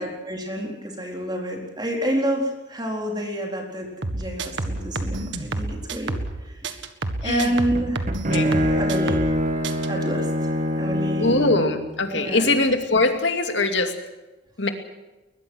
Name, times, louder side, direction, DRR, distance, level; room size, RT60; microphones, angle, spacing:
voice 1, 0.0-3.9 4.1-6.6 7.2-8.1 8.4-9.2 9.9-11.5 12.1-12.5, equal, 20° right, 0 dB, 4.1 m, -28 dB
sound 1, 4.0-6.4 6.6-9.4 9.6-9.9, right 2 dB, 80° right, 1.7 m, -29 dB
Bowed string instrument, 7.7-11.9, equal, 40° right, 2.1 m, -24 dB
voice 2, 11.2-13.9 14.6-14.7, left 2 dB, 70° left, 5 dB, 2.5 m, -22 dB
21.5 x 21.0 x 6.3 m, 1.1 s
head